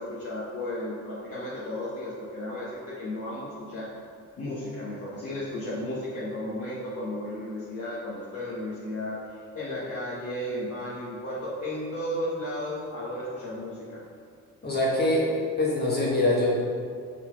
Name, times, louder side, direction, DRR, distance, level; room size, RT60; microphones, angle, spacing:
voice 1, 0.0-3.9 4.4-14.0, left 1 dB, 50° left, -8 dB, 1.3 m, -34 dB
voice 2, 14.6-16.6, left 1 dB, 35° left, -5 dB, 1.2 m, -24 dB
5.6 x 4.1 x 4.6 m, 2.3 s
cardioid pair, 90°, 30 cm